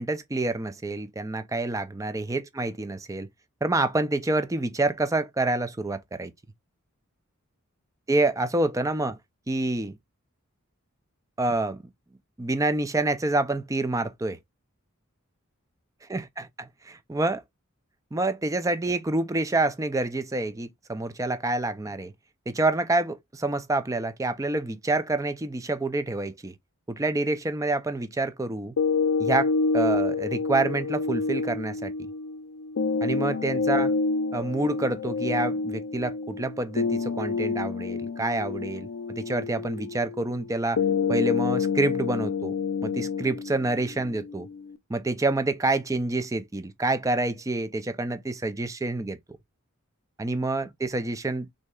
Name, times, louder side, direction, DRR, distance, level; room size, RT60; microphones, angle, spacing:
voice 1, 0.0-3.3 3.6-6.3 8.1-9.2 9.5-9.9 11.4-11.8 12.4-14.4 16.1-17.4 18.1-22.1 22.5-26.5 26.9-28.7 29.2-31.9 33.0-33.9 34.3-40.8 41.1-42.5 42.8-44.5 44.9-49.2 50.2-51.5, right 2 dB, 15° right, 0.4 m, -27 dB
sound 1, 28.8-44.8, left 4 dB, 85° left, 0.4 m, -28 dB
6.2 x 2.8 x 2.3 m
head